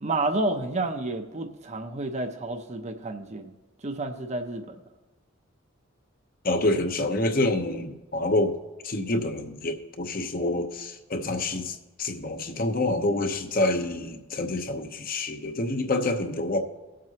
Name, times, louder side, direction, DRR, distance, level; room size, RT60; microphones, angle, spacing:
voice 1, 0.0-3.5 3.8-4.8, right 2 dB, 35° right, 7 dB, 0.7 m, -30 dB
voice 2, 6.4-8.5 8.8-16.6, left 2 dB, 45° left, 6 dB, 0.9 m, -27 dB
19.0 x 7.5 x 2.9 m, 1.1 s
head